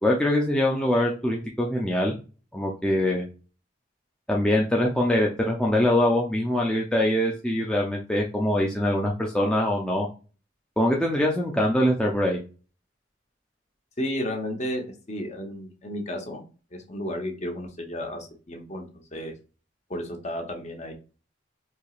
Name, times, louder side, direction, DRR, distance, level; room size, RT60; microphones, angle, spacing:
voice 1, 0.0-2.2 2.5-3.2 4.3-10.1 10.8-12.4, left 1 dB, 5° left, -2 dB, 0.4 m, -23 dB
voice 2, 14.0-16.4 16.7-18.8 19.1-19.3 19.9-20.9, equal, 35° left, 2 dB, 0.8 m, -32 dB
4.4 x 2.8 x 2.4 m, 0.34 s
head